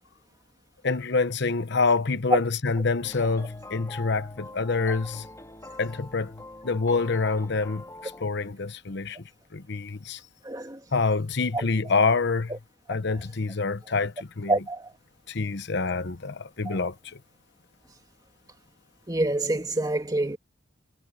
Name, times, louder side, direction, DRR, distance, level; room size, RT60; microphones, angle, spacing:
voice 1, 0.8-5.3 5.8-6.4 6.6-9.2 9.5-10.2 10.9-12.5 12.9-14.5 15.3-17.2, left 4 dB, 60° left, 1.0 m, -26 dB
sound 1, 3.0-8.3, left 2 dB, 15° left, 3.3 m, -44 dB
voice 2, 10.4-10.8 11.5-11.9 12.5-12.6 14.5-14.9 16.7-16.9 19.1-20.4, right 2 dB, 20° right, 2.2 m, -27 dB
head